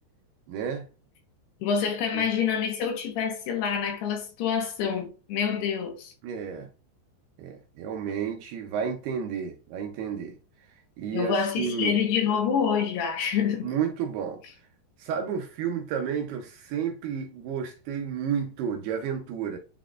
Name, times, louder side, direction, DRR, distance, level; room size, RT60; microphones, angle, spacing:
voice 1, 0.5-0.9 2.1-2.2 6.2-6.7 7.4-10.4 10.7-12.0 13.6-14.4 15.0-19.6, right 7 dB, 80° right, 2.4 m, -31 dB
voice 2, 1.6-6.1 11.1-13.7, left 7 dB, 75° left, 2.9 m, -27 dB
10.0 x 4.0 x 2.4 m
omnidirectional pair, 5.2 m